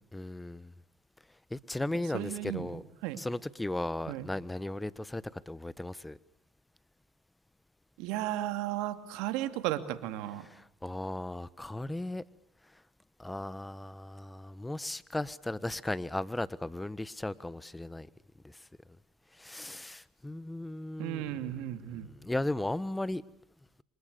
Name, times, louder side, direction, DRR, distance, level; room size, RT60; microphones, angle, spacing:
voice 1, 0.1-0.7 1.5-2.8 3.1-6.2 10.4-12.2 13.2-18.1 18.4-18.5 19.4-21.4 21.9-23.2, left 1 dB, 10° left, 18 dB, 1.3 m, -36 dB
voice 2, 2.1-3.2 4.1-4.3 8.0-10.4 21.0-22.1, right 14 dB, 75° right, 10 dB, 2.5 m, -35 dB
29.0 x 25.0 x 6.9 m, 0.72 s
supercardioid pair, 80°, 0 cm